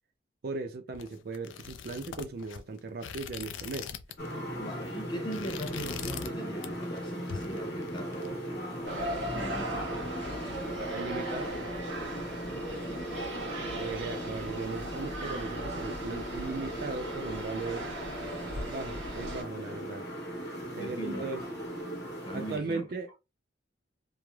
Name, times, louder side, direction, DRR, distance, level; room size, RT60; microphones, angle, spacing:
voice 1, 0.4-3.9 10.9-11.6 13.7-17.9 18.7-20.1 20.8-21.4 22.3-23.2, right 3 dB, 55° right, 0.4 m, -37 dB
sound 1, 0.9-4.3 4.6-4.8 5.2-6.4 6.6-7.0 7.3-8.3, left 7 dB, 85° left, 0.3 m, -42 dB
sound 2, 4.2-22.6, equal, 60° left, 1.1 m, -38 dB
voice 2, 4.6-10.3 12.5-13.1 20.8-21.5 22.2-22.8, right 1 dB, 25° left, 0.6 m, -41 dB
sound 3, 8.8-19.4, right 1 dB, 90° right, 1.2 m, -38 dB
3.1 x 2.0 x 2.3 m
head